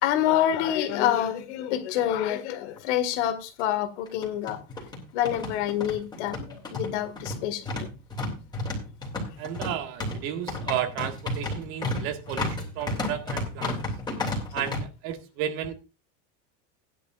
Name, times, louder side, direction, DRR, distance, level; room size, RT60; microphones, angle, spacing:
voice 1, 0.0-4.6 5.1-7.9 13.6-13.7, left 11 dB, 75° left, 2.0 m, -27 dB
sound 1, 2.8-2.9 3.1-3.2 4.1-14.8, left 2 dB, 10° left, 3.1 m, -32 dB
voice 2, 9.4-13.8 14.5-15.7, right 10 dB, 60° right, 1.9 m, -33 dB
16.0 x 10.5 x 2.5 m
supercardioid pair, 155°, 36 cm